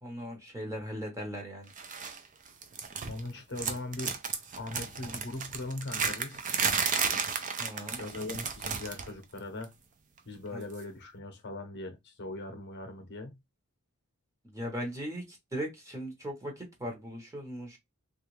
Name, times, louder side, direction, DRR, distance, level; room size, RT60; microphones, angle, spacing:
voice 1, 0.0-1.7 7.6-8.0 10.5-10.6 14.5-17.8, equal, 15° right, 1.0 m, -38 dB
sound 1, 1.8-2.2 2.5-3.3 3.5-9.1 9.4-9.6 10.7-10.8, right 6 dB, 35° right, 0.5 m, -33 dB
voice 2, 3.1-4.2 4.6-6.4 8.0-9.7 10.3-13.4, left 2 dB, 50° left, 0.8 m, -40 dB
3.3 x 2.4 x 3.1 m
head